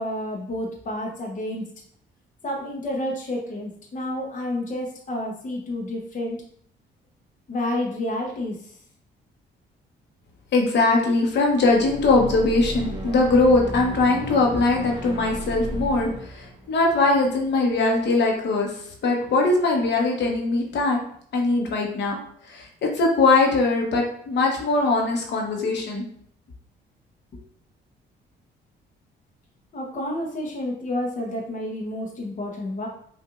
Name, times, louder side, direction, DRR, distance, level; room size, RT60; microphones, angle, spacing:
voice 1, 0.0-1.6 2.4-6.4 7.5-8.7 29.7-32.9, left 1 dB, 40° left, -1 dB, 0.9 m, -30 dB
voice 2, 10.5-21.0 21.3-22.2 22.4-26.0, left 3 dB, 60° left, 0 dB, 1.0 m, -21 dB
sound 1, 11.5-17.9, right 1 dB, 20° right, 1.0 m, -35 dB
5.7 x 2.5 x 2.5 m, 0.63 s
cardioid pair, 90°, 20 cm